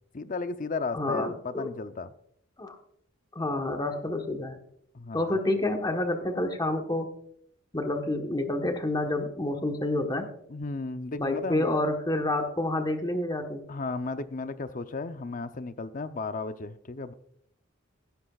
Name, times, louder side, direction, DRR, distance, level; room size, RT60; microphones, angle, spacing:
voice 1, 0.1-2.1 4.9-5.4 10.5-11.8 13.7-17.1, left 3 dB, 40° left, 0.6 m, -34 dB
voice 2, 0.9-1.7 2.6-2.8 3.3-4.6 5.1-7.1 7.7-10.3 11.2-13.6, left 2 dB, 20° left, 1.2 m, -28 dB
15.5 x 11.5 x 2.4 m
head